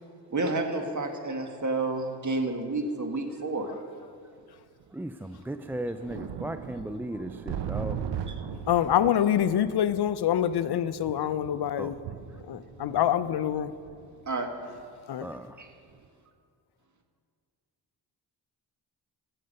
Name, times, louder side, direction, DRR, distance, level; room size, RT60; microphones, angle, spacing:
voice 1, 0.3-3.7 8.3-8.4 14.3-14.5 15.6-15.7, right 2 dB, 40° right, 4 dB, 1.8 m, -30 dB
sound 1, 2.0-2.1 3.1-3.2 4.4-4.5 4.8-4.9 5.4-15.5 15.9-16.1, right 8 dB, 65° right, 0.8 m, -40 dB
voice 2, 4.9-8.0 11.8-11.9 15.2-15.6, right 1 dB, 5° right, 9 dB, 0.3 m, -36 dB
voice 3, 8.7-12.0 12.5-13.7 15.1-15.3, left 10 dB, 55° left, 14 dB, 0.6 m, -26 dB
15.5 x 6.7 x 5.4 m, 2.2 s
supercardioid pair, 40°, 46 cm